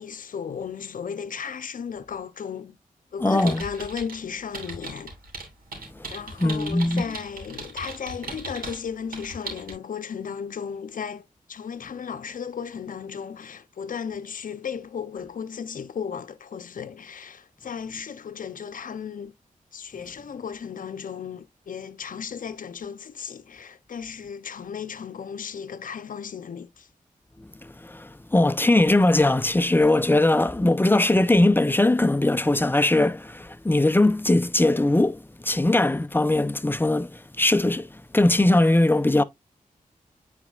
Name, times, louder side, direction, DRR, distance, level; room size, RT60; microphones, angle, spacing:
voice 1, 0.0-2.8 3.1-5.1 6.1-19.3 19.7-26.9, left 7 dB, 70° left, 0.7 m, -35 dB
voice 2, 3.2-3.6 6.0-6.1 6.4-7.0 27.4-37.9 38.1-39.2, left 2 dB, 15° left, 0.7 m, -20 dB
sound 1, 3.4-4.2 4.5-8.8 9.1-9.7, right 3 dB, 90° right, 2.9 m, -37 dB
9.1 x 4.3 x 2.4 m
cardioid pair, 60°, 15 cm